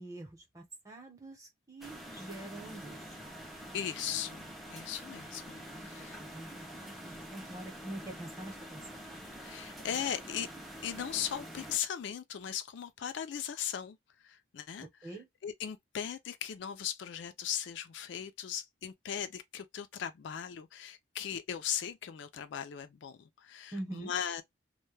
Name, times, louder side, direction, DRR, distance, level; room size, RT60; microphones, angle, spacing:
voice 1, 0.0-3.3 5.7-9.0 14.8-15.3 23.7-24.1, right 1 dB, 15° right, 0.8 m, -45 dB
sound 1, 1.8-11.8, equal, ahead, 0.4 m, -46 dB
voice 2, 3.7-6.2 9.4-10.5 10.8-24.4, left 9 dB, 65° left, 0.3 m, -38 dB
2.2 x 2.1 x 3.1 m
head